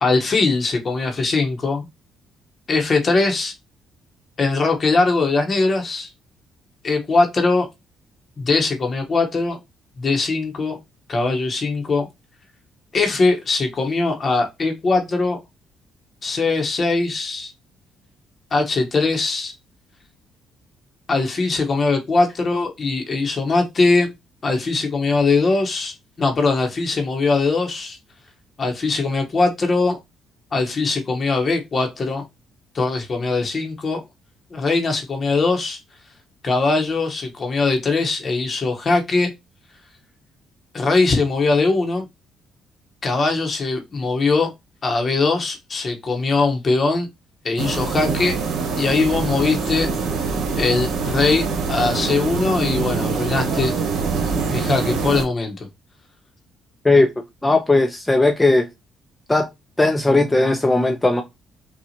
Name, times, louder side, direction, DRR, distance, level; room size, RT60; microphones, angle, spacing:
voice 1, 0.0-1.9 2.7-3.5 4.4-6.1 6.8-7.7 8.4-9.6 10.0-10.8 11.1-12.1 12.9-15.4 16.2-17.5 18.5-19.5 21.1-24.1 24.4-28.0 28.6-30.0 30.5-32.2 32.7-34.0 34.5-35.8 36.4-39.3 40.7-42.1 43.0-44.5 44.8-47.1 47.4-48.4 48.8-49.9 50.5-53.7 54.5-55.6, left 3 dB, 40° left, 1.0 m, -21 dB
sound 1, 47.6-55.2, right 4 dB, 75° right, 1.1 m, -24 dB
voice 2, 57.4-58.7 59.3-59.5 59.8-61.2, left 2 dB, 15° left, 0.6 m, -17 dB
5.7 x 2.4 x 2.8 m
cardioid pair, 100°, 0 cm